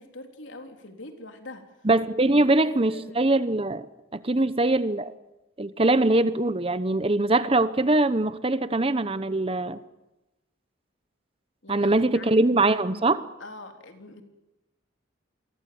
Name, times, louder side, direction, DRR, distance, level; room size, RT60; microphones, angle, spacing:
voice 1, 0.0-1.6 2.3-3.2 4.3-4.5 11.6-12.6 13.4-14.2, left 2 dB, 70° left, 3.8 m, -44 dB
voice 2, 1.8-3.9 4.1-5.1 5.6-9.8 11.7-13.2, right 2 dB, 30° right, 0.9 m, -22 dB
28.5 x 23.0 x 7.9 m
head